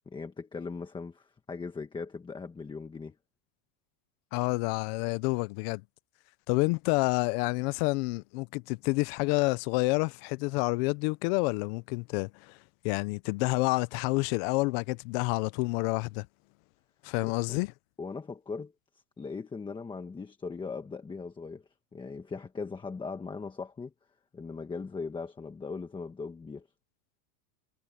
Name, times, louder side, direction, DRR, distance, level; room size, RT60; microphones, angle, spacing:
voice 1, 0.1-3.1 17.2-17.6 18.0-18.7 19.2-21.6 21.9-23.9 24.3-26.7, left 4 dB, 10° left, 1.3 m, -39 dB
voice 2, 4.3-5.8 6.5-12.6 12.8-16.3 17.0-17.7, left 25 dB, 45° left, 0.4 m, -28 dB
supercardioid pair, 160°, 46 cm